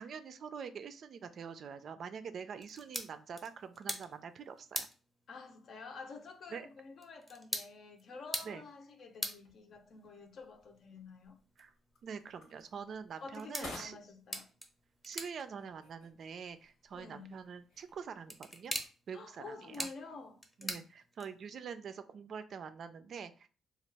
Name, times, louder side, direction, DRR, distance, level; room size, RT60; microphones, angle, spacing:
voice 1, 0.0-4.9 6.5-6.6 8.4-8.6 11.6-11.7 12.0-14.0 15.0-18.7 19.1-19.9 20.6-23.5, right 6 dB, 60° right, 0.3 m, -45 dB
sound 1, 2.6-21.6, equal, 5° left, 0.7 m, -46 dB
voice 2, 5.3-11.4 13.2-14.5 16.9-17.5 19.1-20.9, left 4 dB, 60° left, 0.6 m, -49 dB
sound 2, 9.3-18.5, left 2 dB, 80° left, 1.0 m, -56 dB
2.9 x 2.3 x 3.3 m
cardioid pair, 90°, 0 cm